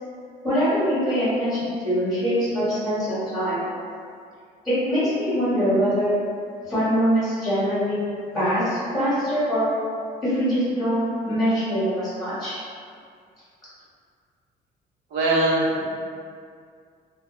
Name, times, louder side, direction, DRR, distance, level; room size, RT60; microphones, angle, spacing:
voice 1, 0.4-3.6 4.6-6.2 6.6-8.0 8.3-9.7 10.2-12.5, equal, ahead, -12 dB, 1.0 m, -23 dB
voice 2, 15.1-15.9, right 2 dB, 85° right, -5 dB, 0.6 m, -21 dB
2.0 x 2.0 x 2.9 m, 2.2 s
cardioid pair, 110°, 17 cm